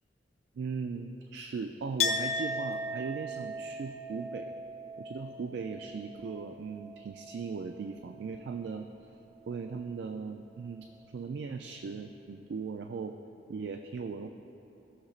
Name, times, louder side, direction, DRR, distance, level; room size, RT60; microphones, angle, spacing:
voice 1, 0.6-4.5 5.0-8.9 9.5-13.1 13.5-14.3, right 5 dB, 60° right, 6 dB, 0.3 m, -38 dB
Chink clink, 2.0-7.5 7.8-8.7, left 2 dB, 35° left, 0.6 m, -37 dB
17.0 x 6.4 x 2.4 m, 2.9 s
head